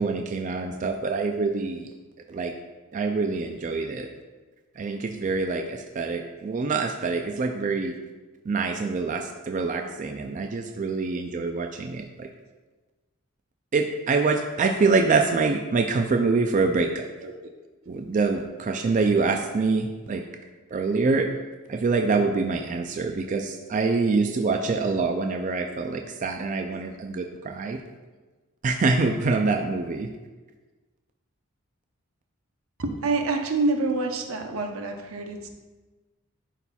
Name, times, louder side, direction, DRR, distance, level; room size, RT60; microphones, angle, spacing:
voice 1, 0.0-1.9 2.3-2.5 2.9-4.1 4.8-7.9 8.5-12.3 13.7-17.0 17.9-20.2 20.7-21.3 21.7-27.8 28.6-30.1, right 4 dB, 35° right, 4 dB, 0.3 m, -25 dB
voice 2, 18.5-18.9 32.8-35.5, right 3 dB, 80° right, 4 dB, 0.8 m, -27 dB
11.0 x 4.2 x 2.3 m, 1.3 s
head